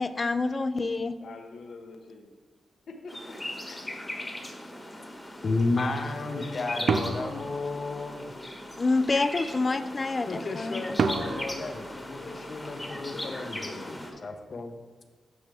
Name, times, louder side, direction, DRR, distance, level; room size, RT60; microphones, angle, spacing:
voice 1, 0.0-1.2 8.8-11.0, left 3 dB, 30° left, 11 dB, 0.4 m, -27 dB
voice 2, 1.2-2.3 2.9-3.1 3.6-3.8 6.3-7.6 8.1-8.5 11.2-11.5 12.2-12.3 13.1-13.8 14.1-14.5, left 4 dB, 75° left, 3 dB, 1.0 m, -46 dB
sound 1, 3.1-14.1, left 1 dB, 15° left, 1.2 m, -39 dB
voice 3, 5.4-8.3 10.3-14.8, left 3 dB, 50° left, 6 dB, 0.8 m, -32 dB
sound 2, 6.9-8.4 11.0-12.8, right 5 dB, 65° right, 0.4 m, -31 dB
9.5 x 6.3 x 3.4 m, 1.3 s
wide cardioid pair, 105°, 0 cm